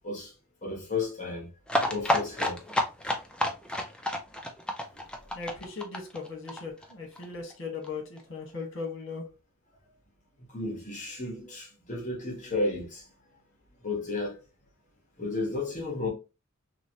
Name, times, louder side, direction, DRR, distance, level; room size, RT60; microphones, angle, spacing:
voice 1, 0.6-1.5 1.9-2.6 10.5-13.1 13.8-14.4 15.2-16.1, left 3 dB, 35° left, 1.2 m, -33 dB
sound 1, 1.7-7.2 7.5-7.6 7.8-7.9 8.2-8.3, left 1 dB, 5° left, 0.4 m, -29 dB
voice 2, 5.3-9.2, left 4 dB, 65° left, 1.2 m, -38 dB
3.0 x 2.9 x 2.8 m
head